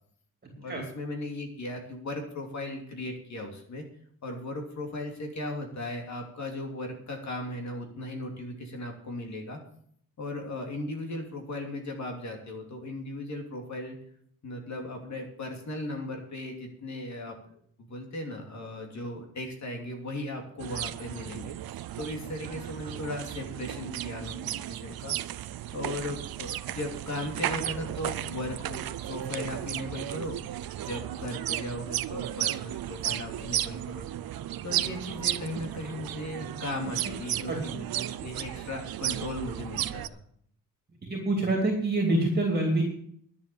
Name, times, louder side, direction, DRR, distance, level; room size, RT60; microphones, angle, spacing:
voice 1, 0.5-3.8 4.2-9.6 10.2-14.0 14.4-17.4 17.8-21.5 22.0-25.2 25.7-30.4 30.8-34.1 34.6-40.2, left 1 dB, 50° left, 2 dB, 2.9 m, -37 dB
sound 1, 20.6-40.1, right 12 dB, 80° right, 0.6 m, -34 dB
voice 2, 41.1-42.8, right 2 dB, 25° right, 0 dB, 2.6 m, -26 dB
11.0 x 7.5 x 8.6 m, 0.64 s
wide cardioid pair, 160°, 35 cm